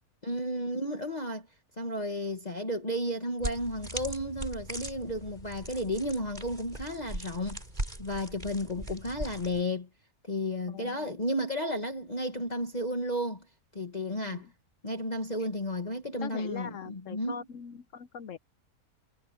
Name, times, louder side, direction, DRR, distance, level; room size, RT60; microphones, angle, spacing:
voice 1, 0.2-1.5 1.8-7.6 8.0-9.9 10.2-13.4 13.7-14.5 14.8-17.4, left 1 dB, 25° left, 1.8 m, -33 dB
sound 1, 3.4-9.6, right 1 dB, 30° right, 4.8 m, -39 dB
voice 2, 10.7-11.1 14.2-14.5 16.2-18.4, left 7 dB, 60° left, 1.0 m, -41 dB
omnidirectional pair, 1.6 m